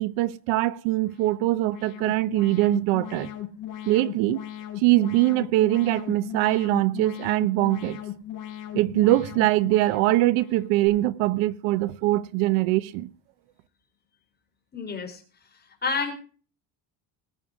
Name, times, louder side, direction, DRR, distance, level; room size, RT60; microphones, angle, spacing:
voice 1, 0.0-3.3 3.9-4.4 4.8-8.0 8.7-13.1, right 17 dB, 90° right, 1.0 m, -22 dB
Alarm, 1.0-10.9, left 11 dB, 40° left, 4.6 m, -38 dB
voice 2, 14.7-15.2 15.8-16.1, left 4 dB, 20° left, 3.7 m, -28 dB
20.5 x 7.3 x 4.8 m
cardioid pair, 160°, 46 cm